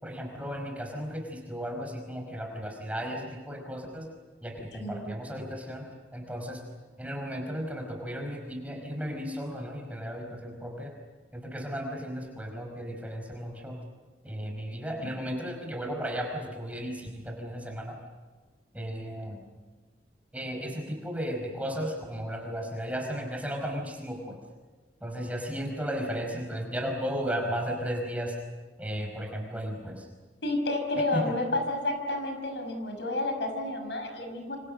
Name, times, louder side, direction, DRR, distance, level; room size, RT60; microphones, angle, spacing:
voice 1, 0.0-4.1 4.4-6.6 7.0-10.9 11.3-13.8 14.2-18.0 18.7-19.4 20.3-24.4 25.0-28.3 28.8-30.1 31.1-31.2, equal, 10° right, 1 dB, 5.0 m, -35 dB
voice 2, 4.7-5.1 30.4-34.6, left 2 dB, 75° left, 5 dB, 5.8 m, -30 dB
28.0 x 26.5 x 6.6 m, 1.3 s
head